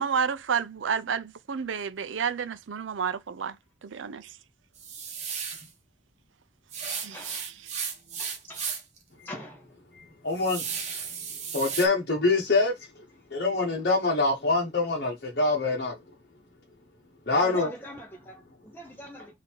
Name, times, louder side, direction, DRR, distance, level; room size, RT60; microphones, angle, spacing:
voice 1, 0.0-3.6 3.8-4.4 6.9-7.5, right 6 dB, 85° right, 0.5 m, -30 dB
sound 1, 4.8-5.7 6.7-9.0 9.4-9.5 10.0-11.9, right 6 dB, 35° right, 1.0 m, -35 dB
voice 2, 6.9-7.5 8.2-8.7 9.2-10.1 17.3-19.3, equal, 10° left, 0.9 m, -43 dB
voice 3, 10.2-10.6 11.5-12.8 13.3-16.0 17.3-17.7, left 3 dB, 55° left, 1.1 m, -24 dB
3.8 x 2.7 x 4.4 m
head